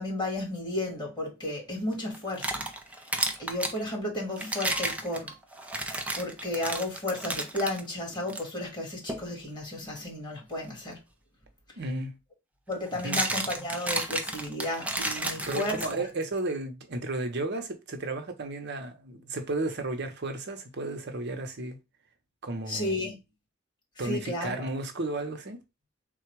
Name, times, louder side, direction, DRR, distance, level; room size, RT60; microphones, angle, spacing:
voice 1, 0.0-2.7 3.4-5.3 6.1-11.0 12.7-16.0 22.7-23.2 24.0-24.7, left 1 dB, 20° left, 1.9 m, -33 dB
sound 1, 2.1-3.8 4.4-7.8 8.3-8.4 9.1-9.3 11.4-11.5 12.7-16.2, right 1 dB, 5° right, 0.5 m, -32 dB
voice 2, 11.8-12.2 13.0-13.2 15.3-21.8 22.4-23.0 24.0-25.6, right 2 dB, 55° right, 0.8 m, -33 dB
3.8 x 2.3 x 4.6 m
head